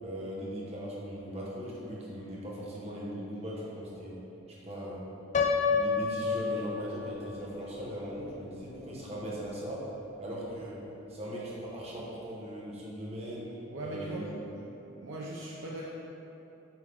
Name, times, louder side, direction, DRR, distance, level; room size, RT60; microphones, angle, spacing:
voice 1, 0.0-4.2 4.5-5.0 5.7-9.8 10.2-10.8 11.1-13.5 13.8-14.3, equal, 35° right, -6 dB, 1.2 m, -39 dB
Piano, 5.3-7.3, left 5 dB, 35° left, 0.3 m, -28 dB
voice 2, 13.7-14.6 15.0-15.9, right 1 dB, 90° right, -5 dB, 0.6 m, -39 dB
7.2 x 3.6 x 3.6 m, 3.0 s
head